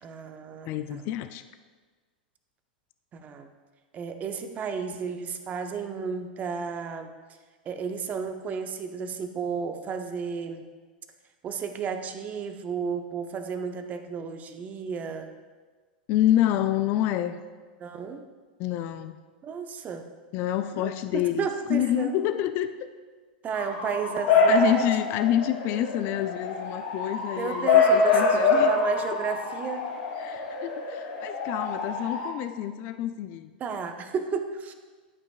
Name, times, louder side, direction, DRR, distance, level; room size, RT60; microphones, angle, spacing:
voice 1, 0.0-1.1 3.1-3.5 3.9-7.1 7.6-10.7 11.4-15.3 17.8-18.3 19.4-20.1 20.7-22.2 23.4-24.8 27.4-29.9 33.6-34.7, right 6 dB, 30° right, 7 dB, 0.7 m, -33 dB
voice 2, 0.7-1.4 16.1-17.4 18.6-19.2 20.3-22.7 24.5-28.7 30.2-33.5, left 12 dB, 45° left, 10 dB, 0.4 m, -27 dB
Bark / Motor vehicle (road) / Siren, 23.5-32.3, left 3 dB, 60° left, 1.7 m, -25 dB
12.0 x 5.2 x 2.5 m, 1.4 s
hypercardioid pair, 100°, 5 cm